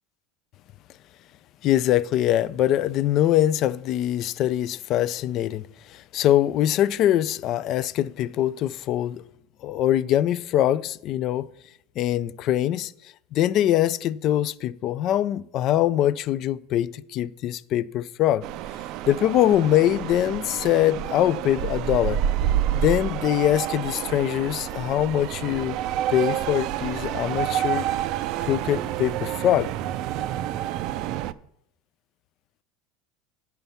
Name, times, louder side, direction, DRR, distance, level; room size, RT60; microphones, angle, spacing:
voice 1, 1.6-9.2 9.6-11.5 12.0-12.9 13.3-18.5 19.1-22.2 22.7-25.8 26.1-27.9 28.5-29.7, left 12 dB, 45° left, 0.3 m, -23 dB
sound 1, 18.4-31.3, right 11 dB, 55° right, 0.4 m, -28 dB
8.0 x 5.6 x 6.9 m
supercardioid pair, 130°, 0 cm